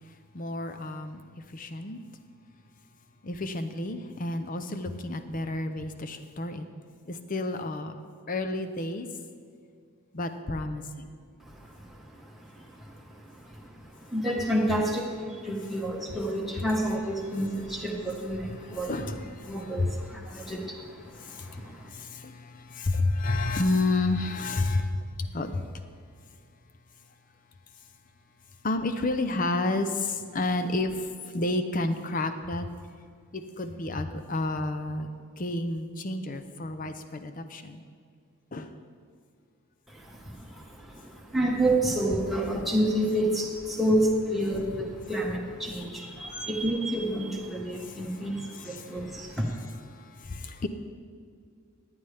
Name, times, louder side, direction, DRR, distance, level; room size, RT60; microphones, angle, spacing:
voice 1, 0.3-1.2 1.5-2.0 3.2-6.6 7.0-7.9 8.3-9.1 10.1-11.2 18.8-20.0 20.3-20.5 21.0-25.8 28.6-31.1 31.3-32.7 33.3-35.1 35.4-37.8 38.5-38.7 46.3-46.5 47.8-48.3 48.5-49.4 49.9-50.7, left 2 dB, 35° left, 9 dB, 0.6 m, -31 dB
voice 2, 11.4-19.0 19.5-21.9 39.9-49.7, right 1 dB, ahead, -3 dB, 1.3 m, -30 dB
15.0 x 9.9 x 3.4 m, 2.2 s
head